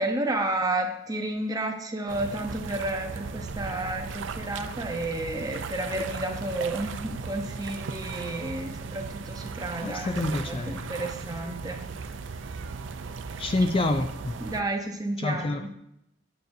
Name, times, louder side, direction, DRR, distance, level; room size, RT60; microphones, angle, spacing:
voice 1, 0.0-10.2 10.5-11.8 14.4-15.7, right 2 dB, 20° right, 4 dB, 0.8 m, -31 dB
sound 1, 2.1-14.6, right 4 dB, 75° right, 0.5 m, -37 dB
voice 2, 9.8-10.8 13.4-14.4 15.2-15.6, left 2 dB, 30° left, 7 dB, 0.4 m, -27 dB
9.2 x 6.2 x 2.7 m, 0.80 s
head